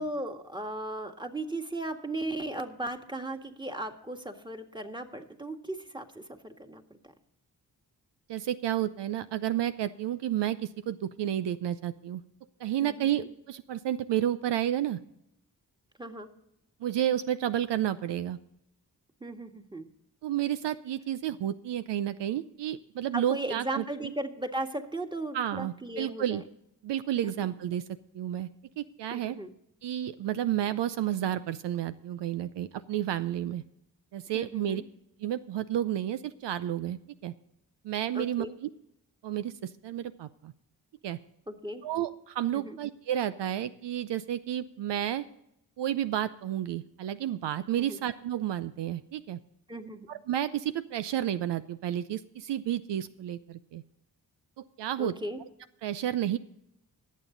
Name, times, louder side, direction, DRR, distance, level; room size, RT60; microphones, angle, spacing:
voice 1, 0.0-7.1 12.8-13.3 16.0-16.3 19.2-19.9 23.1-26.4 27.2-27.5 29.1-29.5 34.3-34.8 38.1-38.6 41.5-41.8 42.5-42.8 47.8-48.0 49.7-50.1 55.0-55.4, right 1 dB, 10° right, 5 dB, 1.8 m, -37 dB
voice 2, 8.3-12.2 12.6-15.0 16.8-18.4 20.2-24.1 25.3-26.4 26.8-27.8 28.1-28.5 28.8-29.4 29.8-33.6 34.1-34.8 35.2-37.3 37.8-38.7 39.2-40.5 41.0-41.2 41.8-45.2 45.8-49.4 50.1-53.8 54.6-55.1 55.8-56.4, right 11 dB, 75° right, 13 dB, 0.6 m, -31 dB
20.0 x 7.4 x 3.9 m, 0.79 s
supercardioid pair, 40°, 42 cm